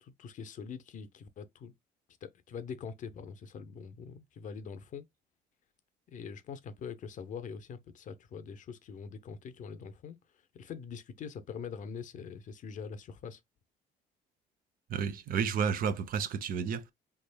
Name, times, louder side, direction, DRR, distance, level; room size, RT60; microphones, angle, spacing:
voice 1, 0.0-1.7 2.2-5.0 6.1-10.2 10.5-13.4, left 6 dB, 50° left, 0.6 m, -43 dB
voice 2, 14.9-16.9, right 7 dB, 55° right, 0.7 m, -31 dB
3.6 x 3.4 x 2.2 m
cardioid pair, 110°, 17 cm